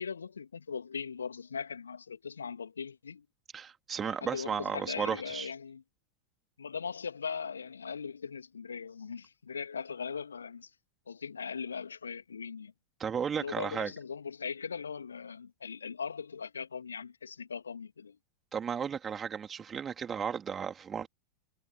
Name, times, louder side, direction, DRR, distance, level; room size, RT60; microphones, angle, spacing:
voice 1, 0.0-3.3 4.0-5.8 6.6-10.7 11.1-12.7 13.4-18.2, left 6 dB, 70° left, 3.2 m, -39 dB
voice 2, 3.5-5.5 13.0-13.9 18.5-21.1, right 7 dB, 20° right, 3.6 m, -34 dB
figure-of-eight pair, 90°, 0 cm